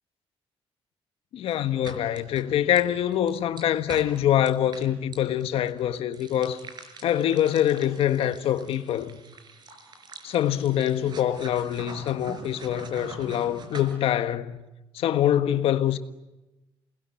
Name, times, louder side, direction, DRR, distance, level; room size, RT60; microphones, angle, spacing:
voice 1, 1.3-6.6 7.0-9.2 10.2-14.6 14.9-16.0, left 11 dB, 85° left, 1.5 m, -24 dB
sound 1, 1.5-13.9, right 3 dB, 50° right, 4.7 m, -44 dB
29.0 x 20.0 x 9.9 m
cardioid pair, 120°, 10 cm